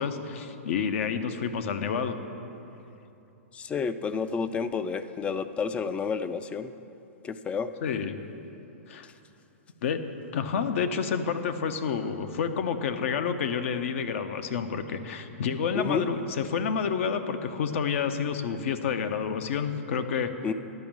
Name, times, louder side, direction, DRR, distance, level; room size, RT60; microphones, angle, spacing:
voice 1, 0.0-2.2 7.8-8.2 8.9-9.1 9.8-10.0 10.3-20.3, left 6 dB, 60° left, 9 dB, 0.7 m, -29 dB
voice 2, 3.5-6.7 7.2-7.7 15.7-16.1 20.4-20.5, left 5 dB, 15° left, 12 dB, 0.3 m, -30 dB
10.5 x 5.2 x 7.3 m, 2.9 s
hypercardioid pair, 135°, 8 cm